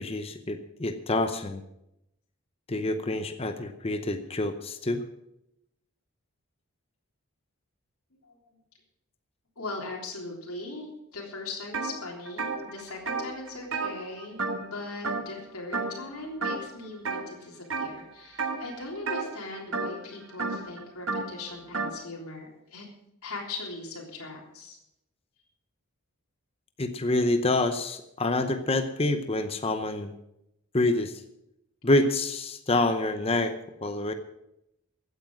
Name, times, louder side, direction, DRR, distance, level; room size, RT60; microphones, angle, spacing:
voice 1, 0.0-1.6 2.7-5.0 26.8-30.1 30.7-31.2 31.8-33.5 33.8-34.1, left 2 dB, 25° left, 8 dB, 0.8 m, -27 dB
voice 2, 9.6-22.9 23.2-24.8, left 2 dB, 75° left, -2 dB, 3.5 m, -39 dB
sound 1, 11.7-11.9 12.3-14.8 15.0-15.4 15.7-16.1 16.4-17.2 17.7-18.0 18.3-22.0, right 3 dB, 60° right, 1.4 m, -32 dB
15.0 x 9.2 x 6.2 m, 0.84 s
head